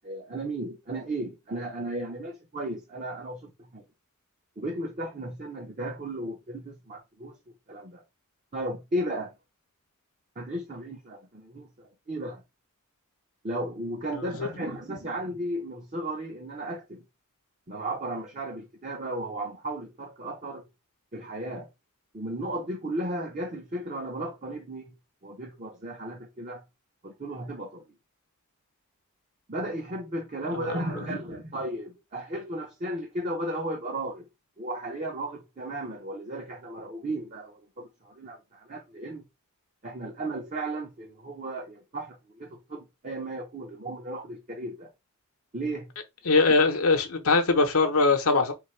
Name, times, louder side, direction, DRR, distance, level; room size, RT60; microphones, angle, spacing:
voice 1, 0.0-3.8 4.6-7.4 7.7-8.0 8.5-9.3 10.4-12.4 13.4-17.0 17.7-20.7 21.1-21.7 22.1-24.9 25.2-26.6 27.0-27.8 29.5-34.3 34.6-39.2 39.8-44.9 45.5-45.9, right 1 dB, 35° right, 0.8 m, -35 dB
voice 2, 46.3-48.5, left 3 dB, 75° left, 0.8 m, -21 dB
3.6 x 2.7 x 4.4 m
head